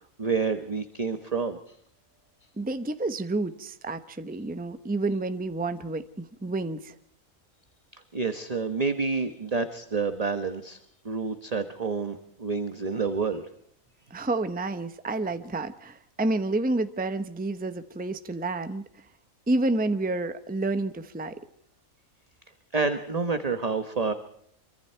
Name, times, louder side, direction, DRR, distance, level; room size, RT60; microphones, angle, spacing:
voice 1, 0.2-1.8 7.9-10.8 11.0-13.5 22.7-24.1, right 4 dB, 30° right, 8 dB, 1.3 m, -28 dB
voice 2, 2.6-6.9 14.1-18.8 19.5-21.4, right 2 dB, 10° right, 10 dB, 0.8 m, -29 dB
26.5 x 24.5 x 4.6 m, 0.68 s
omnidirectional pair, 1.5 m